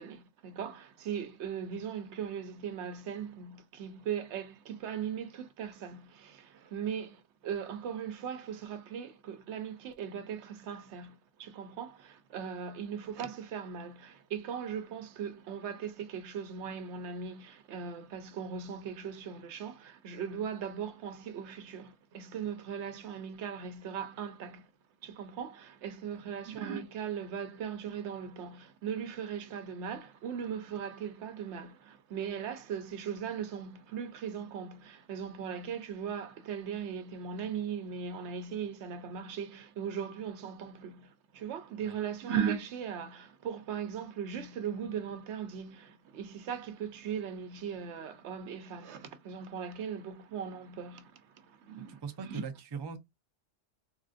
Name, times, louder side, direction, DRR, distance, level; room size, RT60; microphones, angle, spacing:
voice 1, 0.0-24.7 25.0-52.4, right 7 dB, 80° right, 0.9 m, -39 dB
voice 2, 51.8-53.0, right 6 dB, 40° right, 0.3 m, -40 dB
3.6 x 2.5 x 2.4 m
omnidirectional pair, 1.2 m